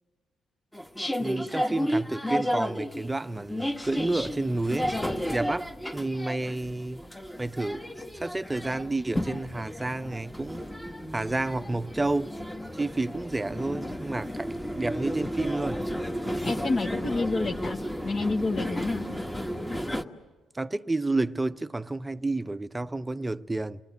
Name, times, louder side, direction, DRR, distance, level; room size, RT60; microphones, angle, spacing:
sound 1, 0.7-20.0, equal, 5° left, 1.4 m, -33 dB
voice 1, 1.2-4.9 5.3-7.0 7.4-10.6 11.1-12.4 12.7-15.9 20.5-23.8, right 2 dB, 15° right, 0.8 m, -30 dB
voice 2, 16.4-17.8 18.0-19.0, left 3 dB, 45° left, 1.8 m, -29 dB
29.5 x 20.5 x 7.9 m
cardioid pair, 90°, 0 cm